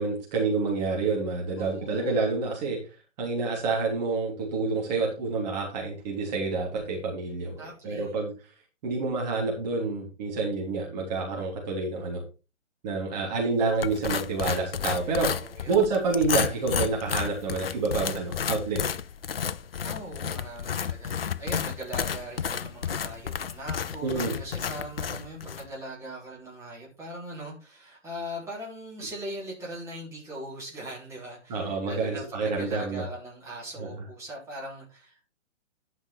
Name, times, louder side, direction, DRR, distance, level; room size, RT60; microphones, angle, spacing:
voice 1, 0.0-2.8 3.2-8.3 8.8-12.2 12.8-15.3 15.7-18.8 24.0-24.3 31.5-33.0 33.8-33.9, right 3 dB, 30° right, 3.2 m, -28 dB
voice 2, 1.6-2.3 7.6-8.1 13.2-13.5 15.4-15.8 19.8-35.3, right 1 dB, 5° right, 3.7 m, -40 dB
sound 1, 13.8-25.7, left 7 dB, 50° left, 0.5 m, -32 dB
11.5 x 5.9 x 4.5 m
figure-of-eight pair, 130°, 39 cm